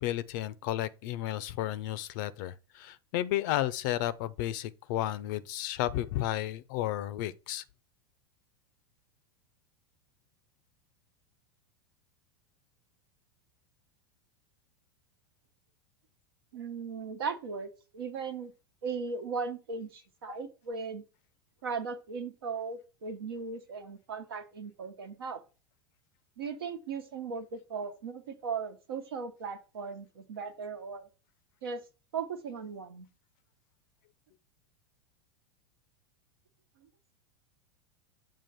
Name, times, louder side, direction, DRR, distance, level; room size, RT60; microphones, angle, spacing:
voice 1, 0.0-7.6, left 13 dB, 55° left, 0.5 m, -32 dB
voice 2, 16.5-18.5 18.8-21.0 21.6-25.4 26.4-31.1 31.6-31.8 32.1-33.1, right 5 dB, 70° right, 1.1 m, -37 dB
7.3 x 2.5 x 5.7 m
figure-of-eight pair, 90°, 13 cm